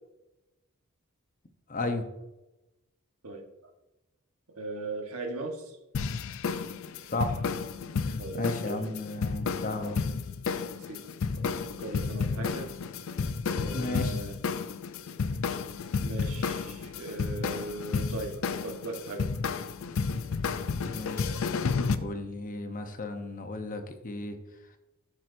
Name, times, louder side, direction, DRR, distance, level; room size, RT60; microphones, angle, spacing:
voice 1, 1.7-2.1 7.1-7.4 8.1-10.0 13.7-14.1 20.9-21.3 22.0-24.4, left 2 dB, 40° left, 6 dB, 0.8 m, -34 dB
voice 2, 4.6-5.8 8.2-8.8 10.8-11.0 11.7-12.7 13.5-14.4 16.0-19.3, right 2 dB, 80° right, 3 dB, 1.3 m, -38 dB
sound 1, 5.9-22.0, left 5 dB, 65° left, 0.4 m, -32 dB
12.0 x 6.0 x 2.6 m, 0.99 s
head